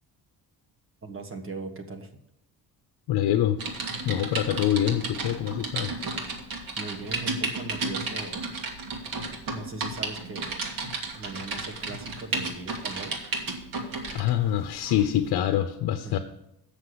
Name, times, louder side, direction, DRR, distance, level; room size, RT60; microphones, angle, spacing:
voice 1, 1.0-2.1 6.8-8.5 9.5-10.6 11.1-13.2 16.0-16.2, right 3 dB, 35° right, 6 dB, 1.3 m, -39 dB
voice 2, 3.1-3.6 4.0-5.9 14.1-16.2, left 11 dB, 75° left, 9 dB, 0.7 m, -25 dB
Typing, 3.6-14.3 14.8-15.0, right 3 dB, 65° right, 2.0 m, -33 dB
8.2 x 6.5 x 7.8 m, 0.81 s
cardioid pair, 155°, 38 cm